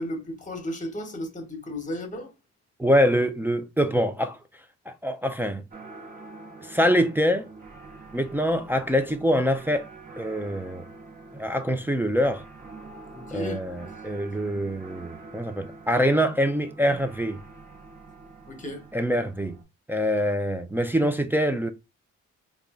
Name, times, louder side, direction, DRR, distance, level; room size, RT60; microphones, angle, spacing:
voice 1, 0.0-2.3 13.1-13.6 18.5-18.8, left 1 dB, 25° left, 1.1 m, -34 dB
voice 2, 2.8-4.4 4.9-5.6 6.7-7.5 8.1-9.9 10.2-10.8 11.3-12.4 13.3-17.4 18.9-19.6 19.9-21.7, equal, 5° right, 0.4 m, -24 dB
sound 1, 5.7-19.6, right 3 dB, 30° right, 1.1 m, -46 dB
3.7 x 2.4 x 3.6 m
cardioid pair, 90°, 30 cm